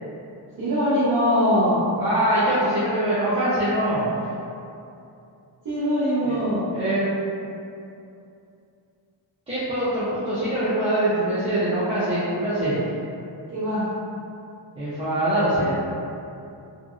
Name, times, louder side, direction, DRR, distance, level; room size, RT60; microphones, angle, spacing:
voice 1, 0.6-1.8 5.6-6.6 13.5-13.9, equal, 40° right, -13 dB, 0.9 m, -22 dB
voice 2, 2.0-4.0 6.2-6.4 6.7-7.1 9.5-12.7 14.8-15.7, right 1 dB, 10° right, -14 dB, 0.6 m, -23 dB
2.9 x 2.7 x 2.4 m, 2.6 s
wide cardioid pair, 135°, 46 cm